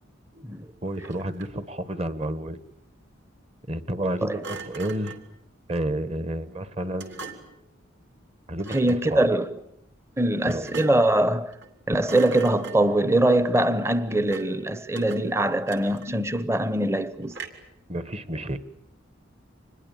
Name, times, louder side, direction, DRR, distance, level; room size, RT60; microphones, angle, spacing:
voice 1, 0.8-2.6 3.7-5.1 5.7-7.4 8.5-9.3 10.5-10.6 17.9-18.6, right 1 dB, 30° right, 1.3 m, -30 dB
Thump thud, 0.9-1.7 4.4-5.3 7.0-7.6 8.6-9.1 10.5-11.2 11.5-11.8 12.0-13.1 14.3-14.6 14.9-16.3 17.3-17.8, right 4 dB, 60° right, 3.0 m, -41 dB
voice 2, 8.7-9.5 10.2-11.5 11.9-17.3, right 1 dB, 15° right, 0.9 m, -22 dB
26.0 x 21.0 x 8.9 m
head